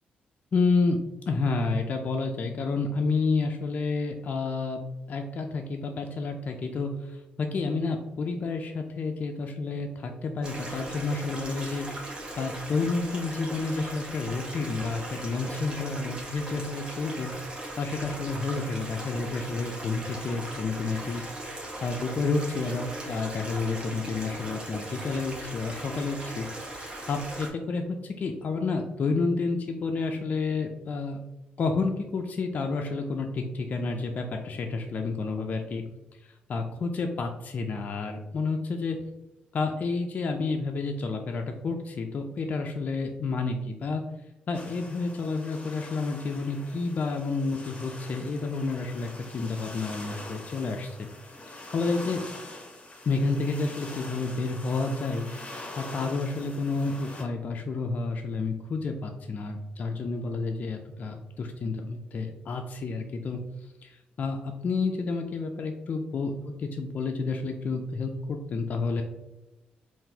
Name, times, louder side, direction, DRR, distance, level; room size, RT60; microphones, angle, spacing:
voice 1, 0.5-1.0 1.3-4.8 5.1-11.9 12.4-17.3 17.8-21.2 21.8-26.5 26.7-31.2 31.6-35.8 36.2-39.0 39.5-44.0 44.5-51.1 51.7-52.2 53.1-55.3 55.8-69.0, left 3 dB, 50° left, 3 dB, 0.3 m, -30 dB
Stream, 10.4-27.5, right 1 dB, 30° right, 1.0 m, -39 dB
sound 1, 44.5-57.2, left 2 dB, 35° left, 0.8 m, -44 dB
3.7 x 2.5 x 2.7 m, 0.99 s
cardioid pair, 85°, 4 cm